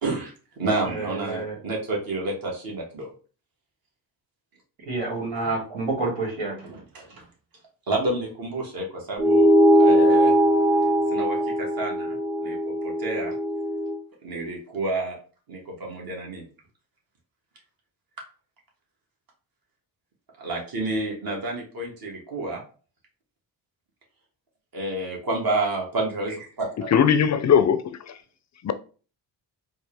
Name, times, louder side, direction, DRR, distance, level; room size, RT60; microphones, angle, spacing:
voice 1, 0.0-3.1 6.7-7.3 7.9-10.3 11.1-13.3 14.2-15.2 15.5-16.5 20.4-22.6 24.7-26.9, right 2 dB, 50° right, -1 dB, 1.7 m, -30 dB
voice 2, 0.8-1.6 4.8-6.7, right 3 dB, 75° right, -3 dB, 2.1 m, -29 dB
sound 1, 9.2-14.0, equal, 10° right, 0.5 m, -20 dB
voice 3, 26.9-28.2 28.6-28.7, left 8 dB, 40° left, 11 dB, 0.5 m, -20 dB
4.3 x 2.3 x 3.4 m, 0.38 s
cardioid pair, 65°, 44 cm